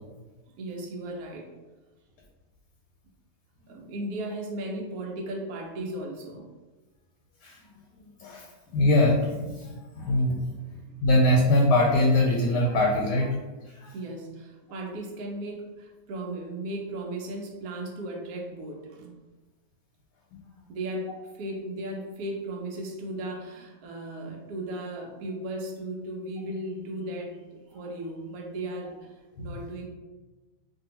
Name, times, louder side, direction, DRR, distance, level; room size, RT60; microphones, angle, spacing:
voice 1, 0.5-1.5 3.7-6.5 13.9-19.1 20.7-29.1 29.4-29.9, right 1 dB, 70° right, 0 dB, 1.0 m, -36 dB
voice 2, 8.2-10.6 11.0-13.4 13.7-13.9 29.4-29.5, left 1 dB, 85° left, -2 dB, 1.2 m, -23 dB
2.6 x 2.6 x 2.9 m, 1.2 s
omnidirectional pair, 1.8 m